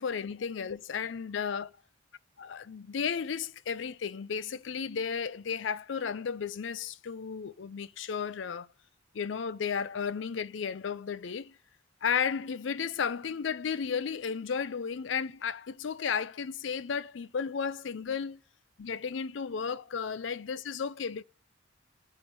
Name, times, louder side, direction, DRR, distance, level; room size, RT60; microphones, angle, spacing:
voice 1, 0.0-1.7 2.4-8.7 9.1-11.6 12.0-18.4 18.8-21.2, left 6 dB, 70° left, 0.5 m, -33 dB
9.7 x 5.3 x 6.0 m
head